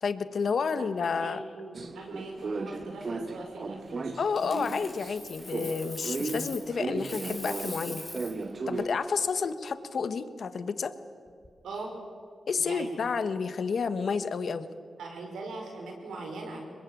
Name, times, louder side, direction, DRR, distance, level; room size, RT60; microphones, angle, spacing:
voice 1, 0.0-1.4 4.2-8.0 8.7-10.9 12.5-14.7, left 5 dB, 70° left, 12 dB, 1.4 m, -30 dB
voice 2, 0.8-4.2 11.6-11.9 12.6-13.0 15.0-16.6, right 3 dB, 85° right, 1 dB, 5.2 m, -41 dB
sound 1, 1.7-5.2 5.5-8.9, right 3 dB, 55° right, 1.5 m, -35 dB
Coin (dropping), 4.3-6.7 7.0-8.4 11.3-11.5, left 2 dB, 25° left, 4.4 m, -42 dB
23.0 x 21.5 x 9.2 m, 2.3 s
supercardioid pair, 45°, 0 cm